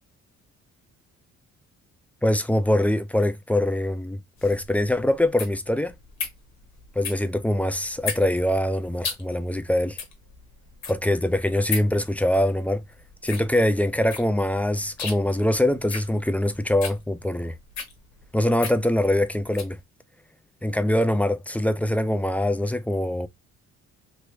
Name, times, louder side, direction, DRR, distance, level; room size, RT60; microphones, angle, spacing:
voice 1, 2.2-5.9 7.0-10.0 10.9-12.8 13.2-17.5 18.3-19.8 20.6-23.3, left 1 dB, 5° left, 0.3 m, -23 dB
sound 1, 4.4-19.8, left 6 dB, 60° left, 1.1 m, -36 dB
3.1 x 2.5 x 3.1 m
cardioid pair, 90°, 30 cm